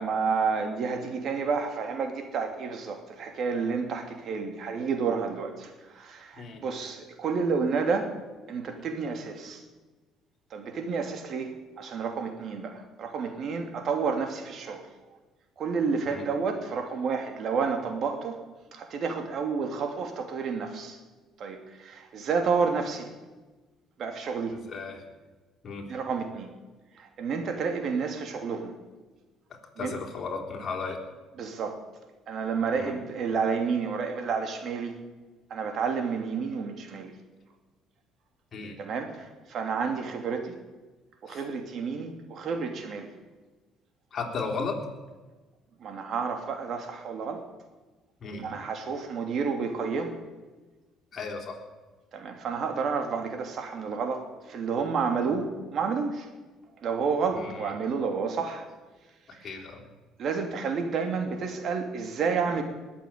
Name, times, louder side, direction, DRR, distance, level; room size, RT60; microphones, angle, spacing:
voice 1, 0.0-8.1 8.5-9.6 10.5-14.9 15.6-18.4 18.7-21.0 21.4-23.1 24.0-24.6 25.9-26.5 26.9-28.7 29.8-29.9 31.4-31.8 32.3-34.9 35.5-37.1 38.8-40.6 41.2-43.1 45.8-47.4 48.4-50.1 52.1-56.3 56.8-58.7 59.3-59.5 60.2-62.6, right 5 dB, 55° right, 5 dB, 2.8 m, -30 dB
voice 2, 24.5-25.0 25.6-25.9 29.8-31.0 32.8-33.0 38.5-38.8 41.3-41.4 44.1-44.8 48.2-48.6 51.1-51.6 57.3-57.7 59.3-59.8, left 4 dB, 45° left, 1 dB, 3.9 m, -35 dB
20.5 x 7.5 x 8.7 m, 1.2 s
cardioid pair, 100°, 0 cm